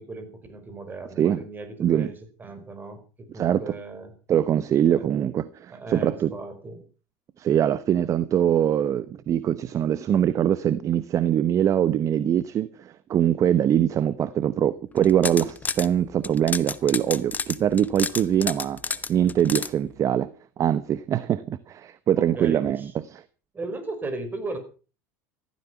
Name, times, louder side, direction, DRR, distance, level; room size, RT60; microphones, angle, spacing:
voice 1, 0.0-2.1 2.4-4.1 4.8-5.1 5.7-6.8 22.2-22.9 23.5-24.6, right 3 dB, 25° right, 5.5 m, -36 dB
voice 2, 4.3-6.3 7.4-20.3 20.6-23.2, right 10 dB, 40° right, 1.0 m, -23 dB
sound 1, 15.0-15.9 16.2-19.7, left 5 dB, 20° left, 1.1 m, -30 dB
15.5 x 14.0 x 6.0 m
supercardioid pair, 110°, 8 cm